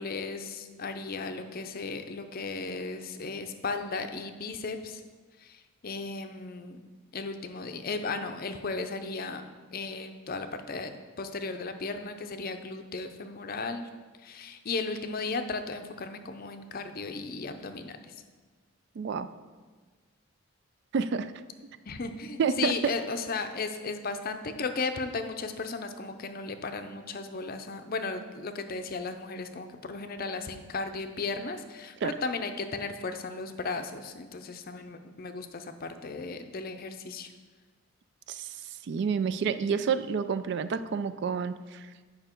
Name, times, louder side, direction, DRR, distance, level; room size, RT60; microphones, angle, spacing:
voice 1, 0.0-5.0 5.4-6.8 7.1-9.4 9.7-10.9 11.2-13.9 14.2-18.1 21.9-37.3, left 3 dB, 45° left, 7 dB, 0.5 m, -35 dB
voice 2, 19.0-19.3 20.9-21.3 22.4-22.7 32.0-32.1 38.3-38.6 38.9-41.9, right 6 dB, 55° right, 12 dB, 0.3 m, -29 dB
8.9 x 5.5 x 4.4 m, 1.4 s
head